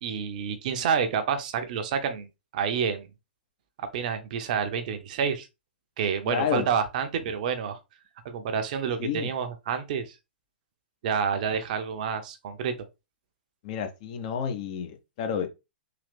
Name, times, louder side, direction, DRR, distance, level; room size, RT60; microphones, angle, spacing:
voice 1, 0.0-3.1 3.8-5.5 6.0-7.8 8.2-10.1 11.0-12.7, right 7 dB, 45° right, 0.7 m, -28 dB
voice 2, 6.3-6.7 9.0-9.3 13.6-15.5, left 7 dB, 40° left, 0.8 m, -30 dB
3.9 x 2.7 x 3.5 m
figure-of-eight pair, 110°, 6 cm